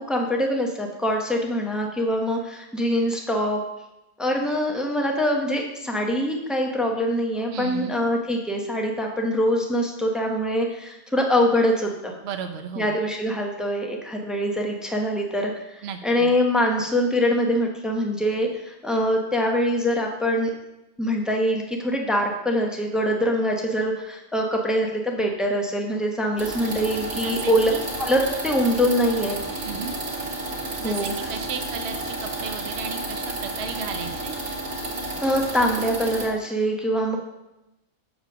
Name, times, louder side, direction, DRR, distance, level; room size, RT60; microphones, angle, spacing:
voice 1, 0.1-3.6 4.2-12.1 12.8-20.5 21.0-27.7 28.0-29.4 30.8-31.1 35.2-37.2, equal, ahead, 1 dB, 0.9 m, -24 dB
voice 2, 7.5-8.0 12.2-13.0 15.8-16.3 27.1-27.8 29.6-29.9 30.8-34.4, right 6 dB, 55° right, 6 dB, 0.9 m, -34 dB
sound 1, 26.4-36.3, right 2 dB, 85° right, 2.2 m, -31 dB
6.8 x 5.2 x 6.2 m, 0.92 s
omnidirectional pair, 1.5 m